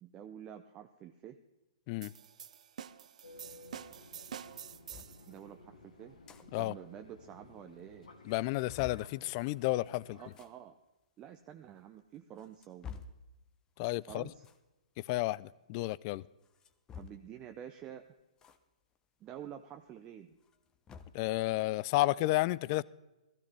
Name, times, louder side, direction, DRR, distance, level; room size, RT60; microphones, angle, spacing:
voice 1, 0.0-1.4 5.3-6.2 6.6-8.1 10.0-10.8 11.2-13.0 14.1-14.4 17.0-18.0 19.2-20.4, right 10 dB, 20° right, 6 dB, 0.6 m, -49 dB
sound 1, 2.0-5.3, right 9 dB, 65° right, 0.7 m, -47 dB
Fixed-wing aircraft airplane, 3.2-10.3, left 2 dB, 90° left, 2.7 m, -56 dB
sound 2, 4.9-5.1 6.0-6.4 6.8-6.9 7.1-7.2 7.8-7.9 8.3-9.1 10.2-10.5 11.3-11.4 12.1-13.2 14.4-14.7 16.4-17.4 18.4-18.6 18.9-19.0 20.3-21.3, left 6 dB, 15° left, 0.8 m, -49 dB
voice 2, 8.3-10.2 13.8-14.2 15.1-16.2 21.1-22.8, left 19 dB, 35° left, 22 dB, 0.3 m, -31 dB
16.0 x 14.5 x 3.4 m, 1.0 s
hypercardioid pair, 140°, 4 cm